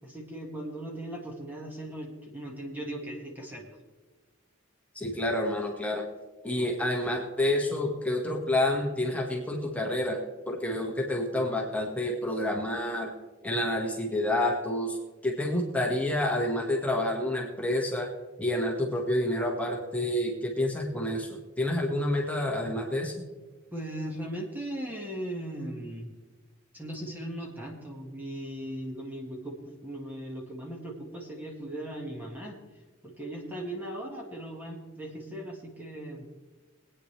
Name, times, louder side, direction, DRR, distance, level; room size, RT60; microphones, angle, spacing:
voice 1, 0.0-3.7 23.7-26.1 26.7-32.6 33.0-36.3, right 1 dB, 10° right, -1 dB, 1.8 m, -38 dB
voice 2, 4.9-6.0 6.4-13.1 13.4-15.0 15.2-18.1 18.4-23.1, left 1 dB, 5° left, -1 dB, 1.7 m, -29 dB
21.5 x 9.2 x 3.3 m, 1.3 s
head